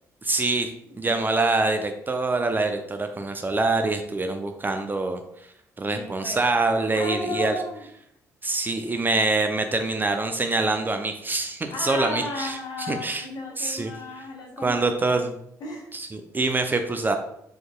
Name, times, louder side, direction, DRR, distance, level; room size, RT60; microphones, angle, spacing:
voice 1, 0.2-0.7 1.0-5.2 5.8-7.5 8.4-12.6 12.9-13.3 13.6-13.9 14.6-15.3 15.9-17.2, right 3 dB, 20° right, 6 dB, 0.5 m, -25 dB
voice 2, 5.9-6.4 6.9-7.8 11.7-15.2 15.6-15.9, left 2 dB, 50° left, -1 dB, 1.3 m, -34 dB
4.7 x 4.3 x 2.3 m, 0.74 s
figure-of-eight pair, 45°, 9 cm